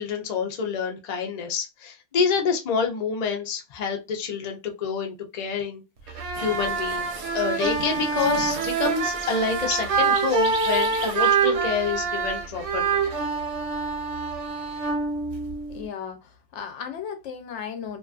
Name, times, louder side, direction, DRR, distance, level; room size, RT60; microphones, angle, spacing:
voice 1, 0.0-5.8 6.4-13.0, left 5 dB, 55° left, 0.5 m, -27 dB
sound 1, 6.1-15.9, right 4 dB, 85° right, 0.9 m, -26 dB
sound 2, 6.3-11.3, right 4 dB, 50° right, 0.7 m, -37 dB
voice 2, 15.7-18.0, left 7 dB, 75° left, 0.9 m, -35 dB
2.4 x 2.4 x 2.3 m
omnidirectional pair, 1.2 m